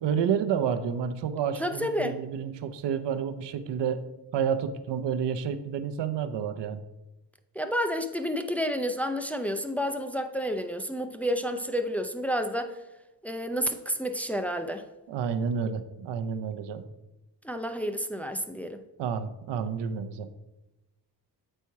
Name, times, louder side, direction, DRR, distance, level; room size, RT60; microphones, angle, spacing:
voice 1, 0.0-4.0 4.3-6.8 15.1-16.8 19.0-20.3, right 7 dB, 90° right, 11 dB, 0.7 m, -30 dB
voice 2, 1.6-2.2 7.6-12.7 13.2-14.8 17.4-18.8, equal, 5° left, 7 dB, 0.5 m, -30 dB
8.2 x 4.4 x 4.6 m, 1.0 s
cardioid pair, 105°, 41 cm